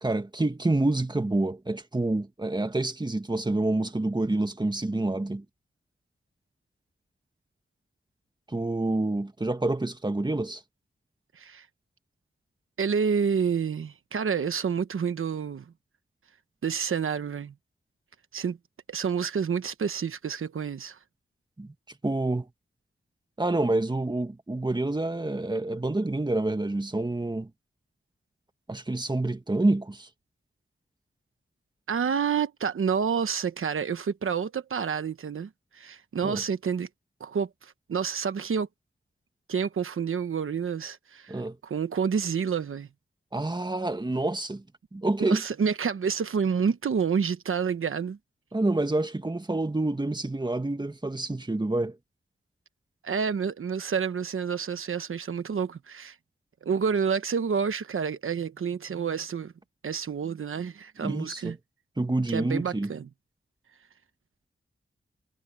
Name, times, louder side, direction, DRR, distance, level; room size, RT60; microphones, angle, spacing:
voice 1, 0.0-5.5 8.5-10.6 21.6-21.7 22.0-22.5 23.4-27.5 28.7-30.1 36.2-36.4 41.3-41.6 43.3-44.6 44.9-45.4 48.5-52.0 61.0-61.6 62.0-62.9, right 2 dB, 20° right, 1.8 m, -27 dB
voice 2, 12.8-15.7 16.6-17.5 18.3-18.6 18.9-21.0 31.9-36.9 37.2-38.7 39.5-42.9 45.2-48.2 53.0-56.1 56.6-59.5 59.8-61.6 62.3-63.1, right 6 dB, 90° right, 1.1 m, -29 dB
wide cardioid pair, 85°, 21 cm